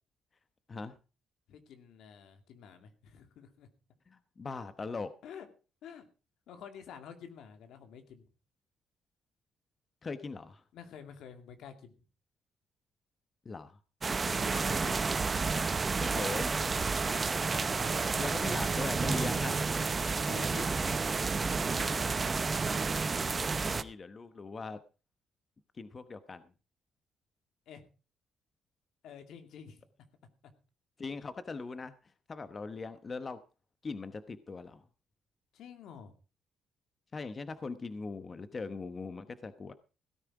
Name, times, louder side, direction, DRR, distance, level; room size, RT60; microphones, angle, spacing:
voice 1, 1.5-3.7 5.2-5.5 5.8-6.0 6.5-8.3 10.7-11.9 14.3-14.9 17.2-18.1 20.1-20.8 21.5-22.2 27.7-27.9 29.0-29.8 35.5-36.1, left 7 dB, 80° left, 7 dB, 2.3 m, -49 dB
voice 2, 4.1-5.1 10.0-10.6 13.4-13.8 14.8-15.2 16.0-16.6 18.0-19.6 23.3-24.8 25.7-26.5 31.0-33.4 33.8-34.8 37.1-39.7, left 4 dB, 35° left, 12 dB, 1.0 m, -40 dB
sound 1, 14.0-23.8, right 4 dB, 35° right, 0.9 m, -30 dB
17.0 x 9.8 x 4.8 m, 0.34 s
cardioid pair, 90°, 0 cm